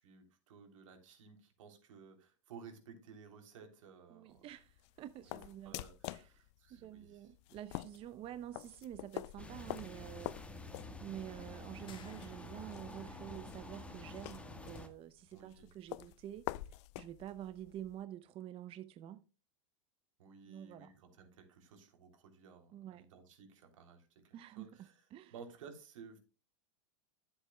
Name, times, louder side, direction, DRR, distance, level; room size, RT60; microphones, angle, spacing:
voice 1, 0.0-4.4 5.2-5.4 5.6-7.3 15.3-15.7 20.2-24.9 25.3-26.2, right 6 dB, 80° right, 3.2 m, -56 dB
voice 2, 4.1-5.7 6.1-6.4 6.7-10.4 11.0-16.5 17.0-19.2 20.5-20.9 22.7-23.1 24.3-25.3, right 12 dB, 35° right, 0.7 m, -48 dB
sound 1, 4.3-18.0, left 18 dB, 60° left, 0.4 m, -48 dB
sound 2, 9.4-14.9, left 2 dB, 5° left, 1.5 m, -49 dB
sound 3, 11.9-13.0, left 8 dB, 30° left, 1.7 m, -59 dB
13.5 x 8.0 x 2.3 m
supercardioid pair, 125°, 16 cm